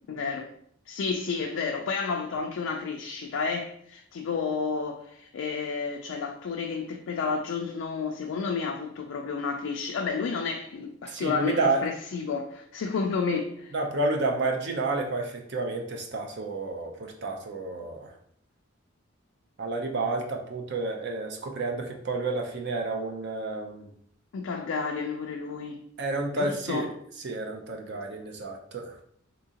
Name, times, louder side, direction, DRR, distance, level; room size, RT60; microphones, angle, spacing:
voice 1, 0.1-0.5 0.9-13.7 24.3-25.8 26.3-26.9 27.9-28.0, left 5 dB, 70° left, 0.3 m, -31 dB
voice 2, 11.1-11.9 13.7-18.1 19.6-23.9 26.0-26.9 27.2-28.9, right 3 dB, 55° right, 0.5 m, -30 dB
3.7 x 2.7 x 2.8 m
head